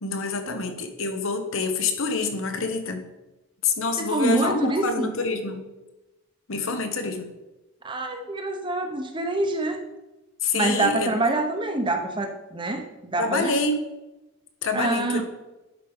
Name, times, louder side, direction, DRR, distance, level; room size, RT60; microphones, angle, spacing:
voice 1, 0.0-3.1 3.6-5.6 6.5-7.3 10.4-11.1 13.2-13.8 14.6-15.2, left 3 dB, 70° left, 7 dB, 1.0 m, -26 dB
voice 2, 4.0-5.1 7.8-9.8 10.5-12.8 13.1-13.6 14.7-15.2, right 2 dB, 20° right, 5 dB, 0.8 m, -26 dB
11.0 x 5.0 x 3.6 m, 1.0 s
head